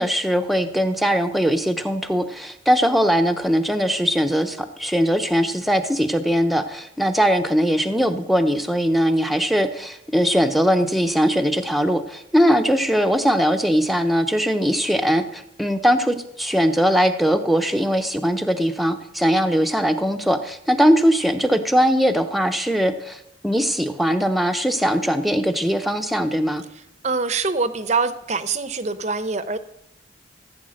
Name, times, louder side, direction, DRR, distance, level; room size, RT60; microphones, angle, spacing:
voice 1, 0.0-26.6, equal, ahead, 6 dB, 0.8 m, -20 dB
voice 2, 27.0-29.6, right 4 dB, 35° right, 12 dB, 0.8 m, -24 dB
15.5 x 8.4 x 6.5 m, 0.81 s
head